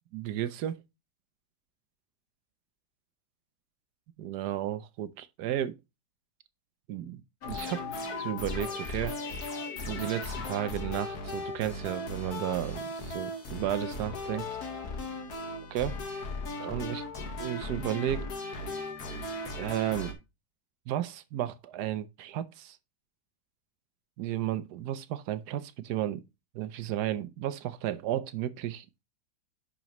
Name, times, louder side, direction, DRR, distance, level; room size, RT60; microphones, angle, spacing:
voice 1, 0.1-0.8 4.2-5.8 6.9-7.2 7.5-7.8 8.2-9.2 9.9-14.5 15.7-16.0 16.6-17.0 17.4-18.3 19.6-20.2 20.9-22.8 24.2-26.2 26.5-28.9, right 12 dB, 70° right, 1.1 m, -33 dB
sound 1, 7.4-20.1, left 2 dB, 60° left, 1.9 m, -37 dB
10.5 x 5.2 x 3.0 m
omnidirectional pair, 1.9 m